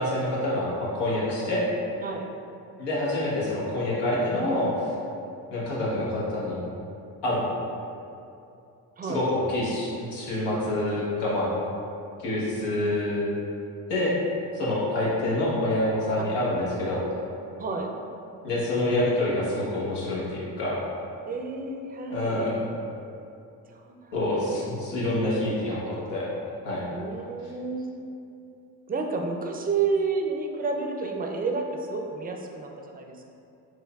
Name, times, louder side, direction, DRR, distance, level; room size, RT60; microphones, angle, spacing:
voice 1, 0.0-1.6 2.8-4.9 5.5-6.6 7.2-7.4 9.1-11.5 12.2-13.2 13.9-14.2 14.5-17.0 18.4-20.8 22.1-22.6 24.1-26.3 26.6-26.8, left 1 dB, 85° left, -6 dB, 1.1 m, -27 dB
voice 2, 21.3-22.5 23.8-24.4 26.9-27.9 28.9-33.3, right 4 dB, 25° right, 2 dB, 0.4 m, -30 dB
4.5 x 3.2 x 2.3 m, 2.6 s
supercardioid pair, 60°, 40 cm